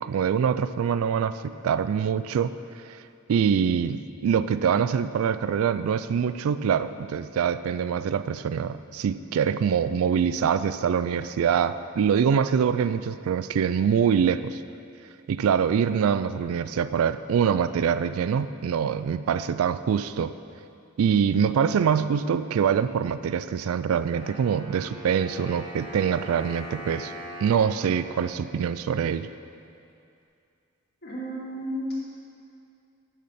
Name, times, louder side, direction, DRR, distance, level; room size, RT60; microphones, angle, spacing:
voice 1, 0.0-2.5 2.9-3.0 3.3-14.6 15.3-20.3 21.0-27.1 27.4-29.3, right 7 dB, 75° right, 13 dB, 0.3 m, -24 dB
Wind instrument woodwind instrument, 24.1-29.1, right 1 dB, 25° left, 1.6 m, -42 dB
voice 2, 31.0-31.9, equal, 50° left, -6 dB, 2.2 m, -33 dB
8.6 x 6.6 x 5.7 m, 2.5 s
head